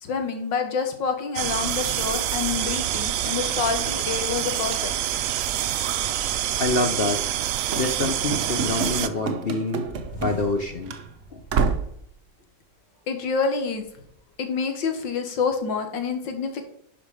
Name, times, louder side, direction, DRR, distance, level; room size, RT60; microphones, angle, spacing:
voice 1, 0.0-4.9 13.1-13.8 14.4-16.6, left 5 dB, 80° left, 6 dB, 2.0 m, -27 dB
sound 1, 1.4-9.1, right 11 dB, 80° right, 0.7 m, -26 dB
voice 2, 6.6-7.2 7.8-9.9 10.1-11.0 11.3-11.4, left 3 dB, 55° left, 5 dB, 0.6 m, -26 dB
Run / Slam, 7.7-10.6 10.9-11.0 11.5-12.0, right 5 dB, 50° right, 1.0 m, -28 dB
sound 2, 9.8-12.2 12.6-12.7 13.4-14.1, right 2 dB, 15° left, 4.1 m, -42 dB
11.0 x 5.2 x 4.9 m, 0.69 s
omnidirectional pair, 2.0 m